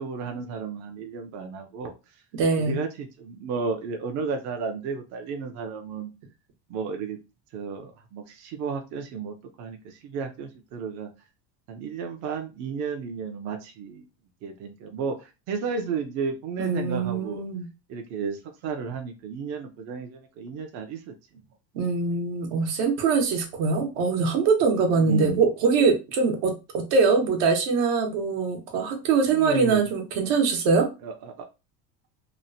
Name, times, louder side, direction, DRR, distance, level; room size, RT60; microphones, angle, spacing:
voice 1, 0.0-1.9 2.6-6.1 6.7-7.2 7.5-11.1 11.7-14.0 14.4-17.4 17.9-21.1 25.0-25.4 29.3-29.9 31.0-31.5, right 5 dB, 45° right, 0.4 m, -32 dB
voice 2, 2.3-2.8 16.6-17.7 21.7-30.9, right 4 dB, 80° right, 1.0 m, -23 dB
2.9 x 2.0 x 2.6 m
cardioid pair, 155°, 39 cm